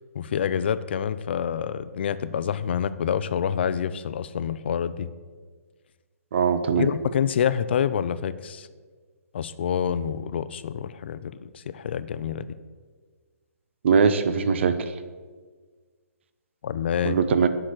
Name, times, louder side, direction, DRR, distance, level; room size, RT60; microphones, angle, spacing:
voice 1, 0.1-5.1 6.8-8.7 9.3-12.4 16.6-17.2, left 8 dB, 45° left, 14 dB, 0.5 m, -27 dB
voice 2, 6.3-6.9 13.8-14.8 17.0-17.5, right 6 dB, 50° right, 11 dB, 0.7 m, -21 dB
9.1 x 6.0 x 7.6 m, 1.5 s
hypercardioid pair, 165°, 8 cm